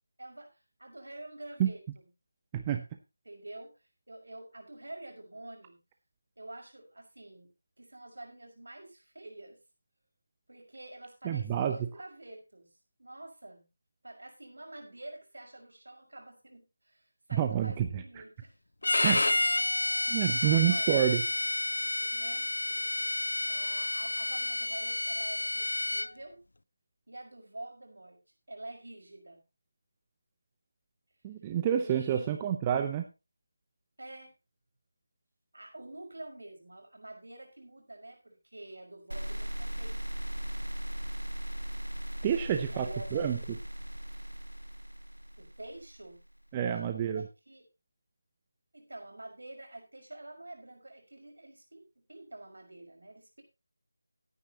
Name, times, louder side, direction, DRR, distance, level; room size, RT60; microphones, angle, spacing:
voice 1, 0.2-2.1 3.2-5.8 6.4-7.5 7.8-9.6 10.5-12.7 13.0-13.7 14.0-18.6 19.5-20.1 20.4-21.2 22.1-22.5 23.5-26.4 27.1-28.2 28.5-29.4 31.8-32.3 34.0-34.3 35.5-40.1 42.4-43.5 45.4-46.2 46.6-47.7 48.7-53.4, right 1 dB, 65° right, 3 dB, 5.7 m, -47 dB
voice 2, 2.5-2.8 11.2-11.8 17.3-18.0 19.0-19.2 20.1-21.2 31.2-33.0 42.2-43.4 46.5-47.2, right 9 dB, 15° right, 6 dB, 0.7 m, -28 dB
Bowed string instrument, 18.8-26.1, left 2 dB, 65° left, 0.6 m, -30 dB
sound 1, 39.1-46.2, equal, 90° right, 0.7 m, -38 dB
17.5 x 9.5 x 2.9 m, 0.28 s
figure-of-eight pair, 160°, 0 cm